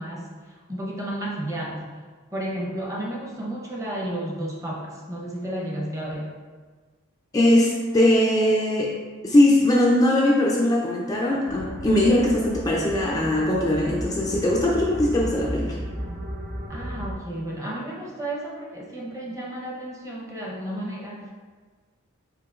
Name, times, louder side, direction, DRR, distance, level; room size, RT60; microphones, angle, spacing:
voice 1, 0.0-1.9 2.3-6.3 16.7-21.3, right 1 dB, 15° right, -3 dB, 0.8 m, -32 dB
voice 2, 7.3-8.9 9.2-15.8, left 1 dB, 20° left, -3 dB, 0.3 m, -20 dB
sound 1, 11.5-17.1, right 1 dB, 55° right, 0.8 m, -33 dB
4.8 x 4.5 x 2.4 m, 1.4 s
head